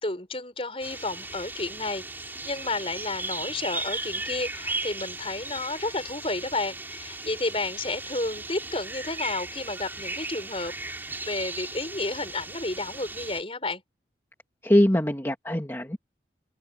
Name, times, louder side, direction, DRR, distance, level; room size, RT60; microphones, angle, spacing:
voice 1, 0.0-10.7 11.3-13.8, left 2 dB, 30° left, 5.7 m, -31 dB
sound 1, 0.8-13.4, right 2 dB, 10° right, 4.1 m, -36 dB
voice 2, 14.6-16.0, left 1 dB, 15° left, 2.0 m, -22 dB
head